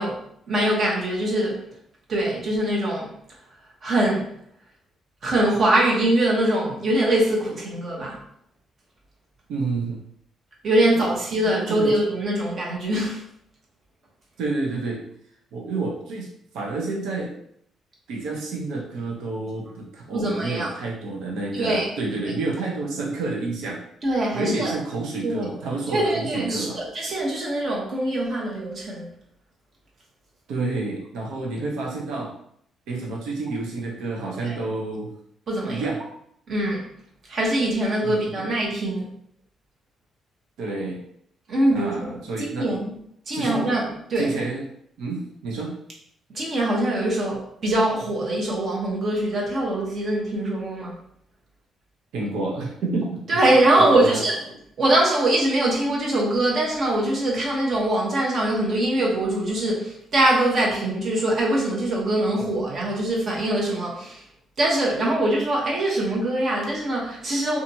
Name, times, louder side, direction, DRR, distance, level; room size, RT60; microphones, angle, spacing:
voice 1, 0.0-1.6 2.1-3.1 3.8-4.3 5.2-8.2 10.6-13.2 20.1-20.7 21.5-21.9 24.0-24.7 25.2-25.5 25.9-29.1 34.4-34.5 35.5-35.8 36.5-36.8 37.3-39.1 41.5-42.9 43.3-44.3 46.3-51.0 53.3-54.3 54.8-64.2 64.6-67.6, right 1 dB, 55° right, -2 dB, 1.0 m, -23 dB
voice 2, 9.5-10.0 10.9-11.1 11.4-11.9 14.4-15.0 15.5-16.3 16.5-17.3 18.1-23.8 24.3-26.8 30.5-32.3 32.9-35.1 35.7-36.0 38.0-38.5 40.6-41.0 41.7-42.7 43.3-43.7 44.2-44.6 45.0-45.7 52.1-53.4 53.8-54.2, right 3 dB, 85° right, -1 dB, 0.6 m, -29 dB
2.7 x 2.4 x 2.7 m, 0.70 s
cardioid pair, 90°, 0 cm